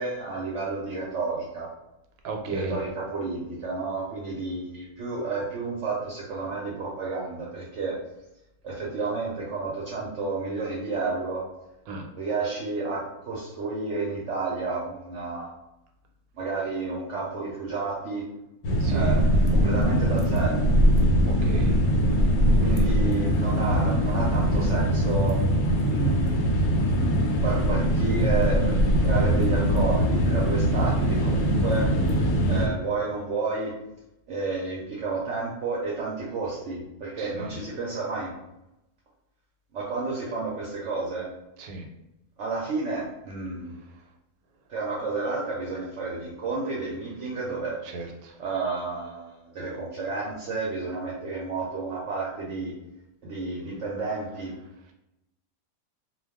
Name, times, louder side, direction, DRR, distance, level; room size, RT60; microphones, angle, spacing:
voice 1, 0.0-1.7 2.5-8.0 8.6-11.5 12.2-15.5 16.4-18.3 18.9-20.6 22.6-25.4 25.8-26.5 27.0-27.1 27.4-32.0 32.5-33.8 34.3-38.3 39.7-41.3 42.4-43.8 44.7-47.8 48.4-52.8 53.2-54.5, right 3 dB, 65° right, -4 dB, 0.8 m, -31 dB
voice 2, 2.2-2.8 11.9-12.1 18.8-19.2 21.3-21.8 22.6-23.0 37.2-37.5 41.6-41.9 47.9-48.3, right 2 dB, 85° right, 3 dB, 1.1 m, -35 dB
sound 1, 18.6-32.7, equal, 85° left, 1.1 m, -22 dB
2.3 x 2.2 x 3.5 m, 0.90 s
omnidirectional pair, 1.5 m